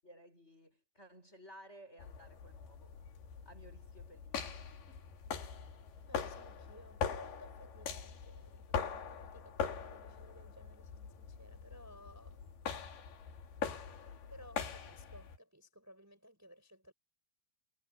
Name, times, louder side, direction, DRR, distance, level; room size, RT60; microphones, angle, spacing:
voice 1, 0.0-2.9 3.4-5.1, equal, 15° left, 6.9 m, -57 dB
sound 1, 2.0-15.4, left 7 dB, 60° left, 4.8 m, -42 dB
voice 2, 6.1-12.4 14.3-16.9, equal, 5° right, 5.6 m, -58 dB
omnidirectional pair, 5.4 m